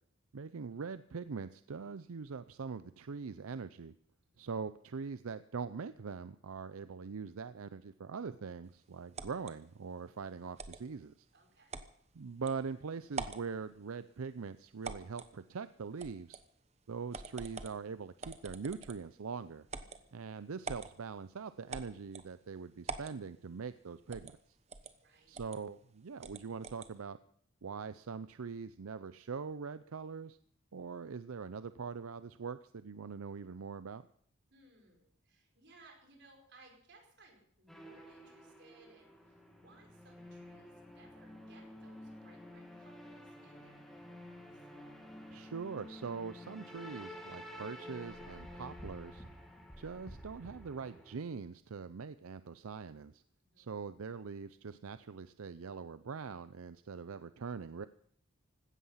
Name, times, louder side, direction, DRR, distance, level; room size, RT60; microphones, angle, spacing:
voice 1, 0.3-3.9 4.4-11.1 12.1-16.4 16.9-19.7 20.1-24.4 25.3-27.2 27.6-30.4 30.7-34.1 45.3-49.2 49.8-53.2 53.6-57.9, right 5 dB, 80° right, 13 dB, 0.5 m, -42 dB
sound 1, 9.2-9.5 10.6-10.8 11.7-11.9 12.5-12.6 13.1-13.5 14.8-15.3 16.0-16.4 17.1-17.8 18.2-19.1 19.7-20.0 20.6-20.9 21.7-22.3 22.9-23.2 24.1-24.4 24.7-24.9 25.3-25.6 26.2-26.9, right 4 dB, 30° right, 1.0 m, -44 dB
voice 2, 11.3-11.8 19.8-20.1 25.0-25.4 34.5-44.0 44.5-44.7 53.4-53.7, right 2 dB, 50° right, 2 dB, 4.9 m, -63 dB
sound 2, 37.7-51.2, equal, ahead, 2.2 m, -50 dB
16.5 x 13.0 x 5.6 m, 0.63 s
head